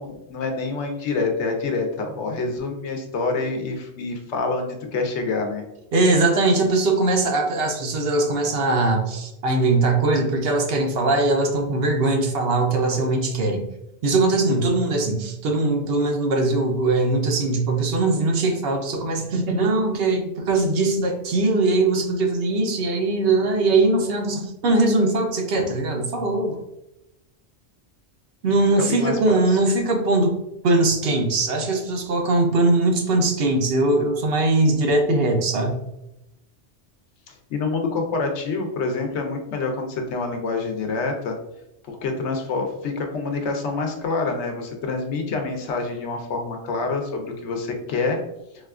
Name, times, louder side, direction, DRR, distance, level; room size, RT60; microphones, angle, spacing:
voice 1, 0.0-5.6 28.8-29.1 37.5-41.4 41.9-48.2, left 3 dB, 80° left, 3 dB, 0.9 m, -27 dB
voice 2, 5.9-13.6 14.0-26.6 28.4-30.4 30.6-35.8, right 2 dB, 65° right, 3 dB, 0.8 m, -21 dB
4.1 x 2.3 x 2.3 m, 0.87 s
omnidirectional pair, 1.2 m